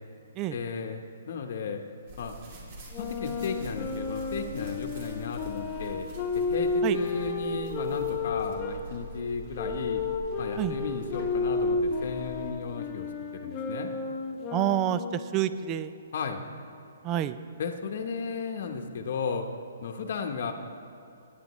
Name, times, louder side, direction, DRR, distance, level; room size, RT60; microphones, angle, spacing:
voice 1, 0.5-1.8 2.2-2.4 3.0-6.1 6.3-10.0 10.4-13.1 13.3-13.9 16.1-16.4 17.6-19.5 19.8-20.5, left 5 dB, 55° left, 4 dB, 1.0 m, -34 dB
sound 1, 2.1-12.5, equal, 45° right, 2.9 m, -44 dB
Wind instrument woodwind instrument, 2.9-8.8 9.5-15.3, left 3 dB, 25° left, 1.2 m, -32 dB
voice 2, 14.5-15.9 17.0-17.4, right 12 dB, 20° right, 13 dB, 0.4 m, -28 dB
17.5 x 10.0 x 3.1 m, 2.8 s
hypercardioid pair, 160°, 0 cm